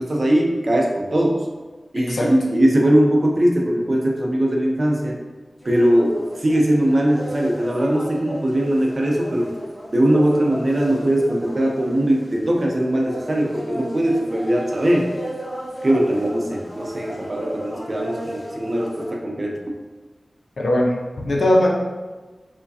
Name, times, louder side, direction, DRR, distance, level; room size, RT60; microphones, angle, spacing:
voice 1, 0.0-1.4 1.9-5.2 5.6-9.5 9.9-15.1 15.8-19.6, right 1 dB, 50° right, 0 dB, 0.6 m, -20 dB
voice 2, 2.0-2.3 20.6-21.7, left 1 dB, 70° left, -1 dB, 0.5 m, -19 dB
sound 1, 5.6-19.1, equal, 15° left, 1.0 m, -35 dB
4.6 x 2.2 x 2.7 m, 1.3 s
wide cardioid pair, 55°, 0 cm